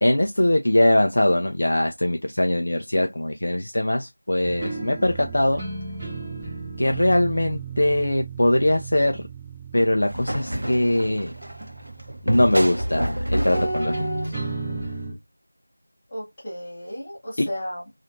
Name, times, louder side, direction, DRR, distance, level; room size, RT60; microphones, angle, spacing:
voice 1, 0.0-5.6 6.8-9.2 9.7-11.3 12.2-14.2 17.4-17.5, left 1 dB, 45° left, 0.3 m, -21 dB
sound 1, 4.4-13.2 13.5-15.1, right 3 dB, 5° right, 0.6 m, -34 dB
sound 2, 10.1-14.9, equal, 55° right, 0.7 m, -29 dB
voice 2, 16.1-17.9, equal, 15° left, 1.0 m, -35 dB
2.9 x 2.4 x 2.7 m
figure-of-eight pair, 175°, 0 cm